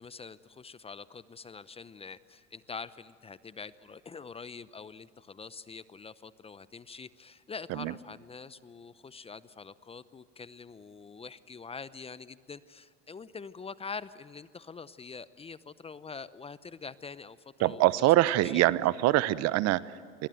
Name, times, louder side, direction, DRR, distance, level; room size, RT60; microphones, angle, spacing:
voice 1, 0.0-18.1 18.4-18.6, left 5 dB, 15° left, 16 dB, 0.8 m, -45 dB
voice 2, 17.6-20.3, right 16 dB, 50° right, 17 dB, 1.0 m, -25 dB
28.0 x 23.0 x 7.8 m, 2.3 s
hypercardioid pair, 90°, 34 cm